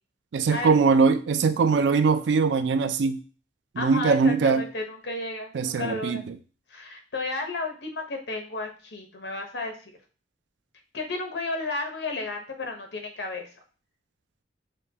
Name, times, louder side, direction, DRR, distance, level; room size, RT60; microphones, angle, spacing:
voice 1, 0.3-3.2 3.7-4.6 5.5-6.3, right 5 dB, 80° right, 0.4 m, -22 dB
voice 2, 3.8-6.2 6.7-10.0 10.9-13.5, left 3 dB, 75° left, 0.9 m, -33 dB
6.4 x 2.2 x 2.8 m
head